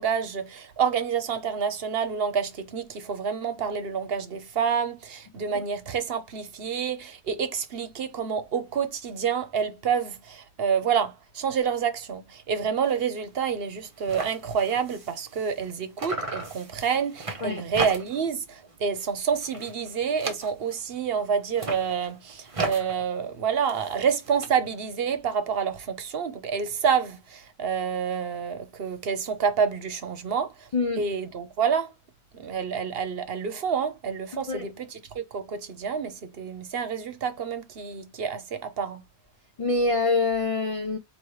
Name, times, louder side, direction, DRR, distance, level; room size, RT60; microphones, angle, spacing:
voice 1, 0.0-30.7 31.0-31.9 32.3-39.0, right 6 dB, 65° right, 1.0 m, -28 dB
sound 1, 12.8-13.1 13.4-13.5 13.7-15.7 16.0-18.4 18.7-19.1 19.4-20.9 21.4-24.5, right 3 dB, 35° right, 0.9 m, -36 dB
voice 2, 30.7-31.0 34.3-34.7 39.6-41.0, left 3 dB, 50° left, 0.4 m, -25 dB
4.6 x 3.0 x 3.1 m
omnidirectional pair, 1.1 m